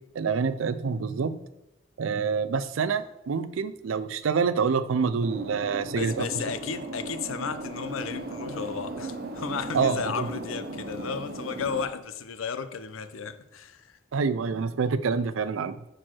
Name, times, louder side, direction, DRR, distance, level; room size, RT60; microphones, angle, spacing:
voice 1, 0.1-1.4 2.0-6.3 9.7-10.3 14.1-15.8, right 5 dB, 85° right, 0.4 m, -27 dB
sound 1, 5.2-11.8, right 2 dB, 50° right, 0.7 m, -37 dB
voice 2, 5.9-14.0, left 6 dB, 90° left, 0.5 m, -34 dB
6.3 x 4.4 x 4.4 m
head